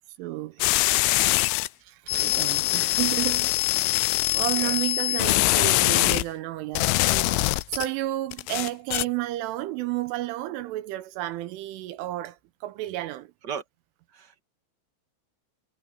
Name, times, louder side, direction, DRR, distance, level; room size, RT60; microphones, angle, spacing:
voice 1, 0.2-0.6 1.5-1.6 1.8-3.7 4.3-13.3, right 16 dB, 80° right, 3.3 m, -32 dB
sound 1, 0.6-1.7 2.1-6.3 6.8-7.9 8.3-9.0, left 20 dB, 80° left, 2.9 m, -23 dB
voice 2, 4.5-5.3 13.4-13.6 14.1-14.4, right 7 dB, 45° right, 1.3 m, -38 dB
omnidirectional pair, 5.8 m